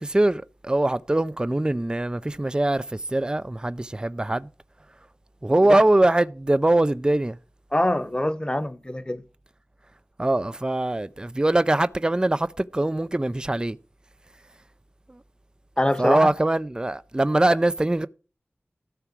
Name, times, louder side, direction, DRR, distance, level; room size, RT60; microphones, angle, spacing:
voice 1, 0.0-4.5 5.4-7.4 10.2-13.8 15.1-15.2 16.0-18.1, right 1 dB, 20° right, 0.4 m, -22 dB
voice 2, 7.7-9.2 15.8-16.3, left 1 dB, 20° left, 0.9 m, -24 dB
13.5 x 4.6 x 6.0 m
wide cardioid pair, 55°, 4 cm